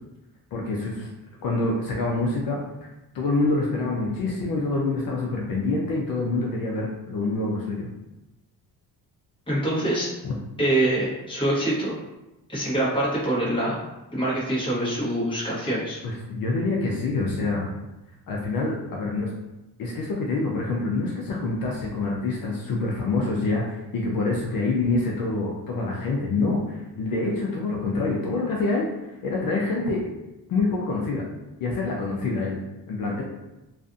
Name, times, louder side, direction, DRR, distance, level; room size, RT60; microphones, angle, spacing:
voice 1, 0.5-1.1 1.4-2.9 3.1-7.9 10.2-10.3 16.0-17.7 18.3-19.3 19.8-30.0 30.5-31.2 31.6-32.6 32.9-33.2, left 3 dB, 60° left, -2 dB, 0.5 m, -26 dB
voice 2, 9.5-10.1 10.6-11.9 12.5-13.9 14.1-16.0, right 1 dB, 15° left, -7 dB, 1.0 m, -25 dB
2.5 x 2.4 x 2.5 m, 0.99 s
cardioid pair, 110°, 39 cm